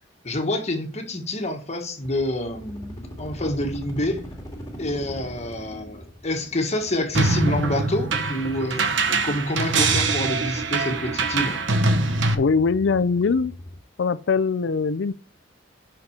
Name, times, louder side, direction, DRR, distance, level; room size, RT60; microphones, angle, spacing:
voice 1, 0.2-4.2 4.8-11.6, left 1 dB, 35° left, 1.4 m, -27 dB
sound 1, 2.0-13.8, equal, 20° left, 1.9 m, -41 dB
sound 2, 7.1-12.3, right 3 dB, 75° right, 1.1 m, -23 dB
voice 2, 12.4-13.5 14.0-15.1, left 5 dB, 70° left, 0.5 m, -21 dB
5.9 x 5.9 x 6.6 m
head